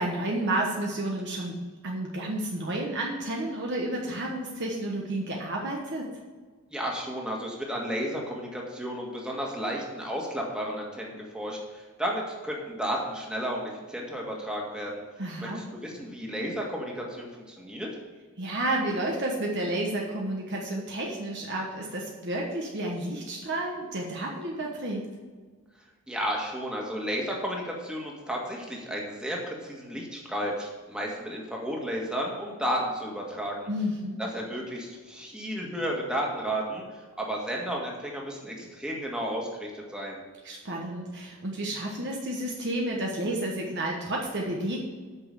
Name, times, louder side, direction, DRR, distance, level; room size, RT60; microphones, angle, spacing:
voice 1, 0.0-6.1 15.2-15.6 18.4-25.0 33.7-34.2 40.4-44.8, right 1 dB, 50° right, -1 dB, 1.3 m, -31 dB
voice 2, 6.7-15.0 15.4-17.9 26.1-33.7 34.2-40.2, equal, 5° right, -2 dB, 1.8 m, -33 dB
8.7 x 6.2 x 6.6 m, 1.5 s
head